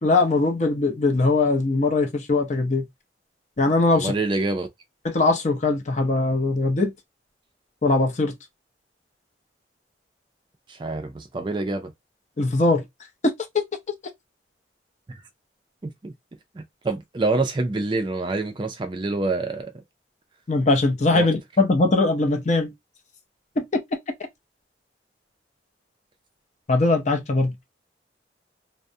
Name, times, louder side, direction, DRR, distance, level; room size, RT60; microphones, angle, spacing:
voice 1, 0.0-2.9 3.6-4.1 5.0-6.9 7.8-8.3 12.4-12.8 20.5-22.7 23.6-23.7 26.7-27.5, left 3 dB, 40° left, 0.5 m, -21 dB
voice 2, 3.9-4.7 10.7-11.9 15.1-15.2 15.8-16.1 16.5-19.7 21.1-21.3, right 2 dB, 25° right, 0.3 m, -26 dB
2.3 x 2.0 x 2.6 m
head